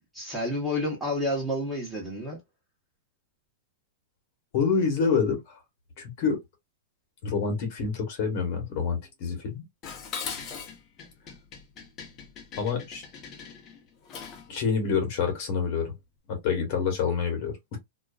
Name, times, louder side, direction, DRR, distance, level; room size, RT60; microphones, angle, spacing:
voice 1, 0.1-2.4, left 1 dB, 5° right, 1.0 m, -29 dB
voice 2, 4.5-5.6 6.0-6.4 7.2-9.6 12.6-13.0 14.5-15.9 16.3-17.8, left 5 dB, 55° left, 1.1 m, -27 dB
Dishes pots and pans, 9.8-14.5, left 6 dB, 35° left, 0.7 m, -40 dB
2.4 x 2.2 x 2.3 m
hypercardioid pair, 125°, 0 cm